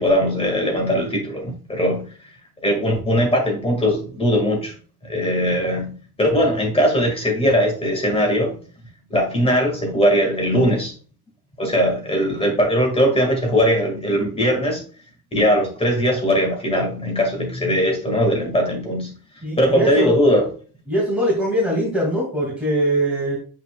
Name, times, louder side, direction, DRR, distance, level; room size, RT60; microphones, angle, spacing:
voice 1, 0.0-2.1 2.6-4.7 5.0-5.9 6.2-8.6 9.1-10.9 11.6-14.8 15.3-19.1 19.6-20.5, equal, 15° left, 2 dB, 1.9 m, -20 dB
voice 2, 19.4-20.2 20.9-23.4, equal, 5° right, -8 dB, 2.2 m, -22 dB
7.8 x 5.7 x 2.3 m, 0.39 s
cardioid pair, 175°, 40 cm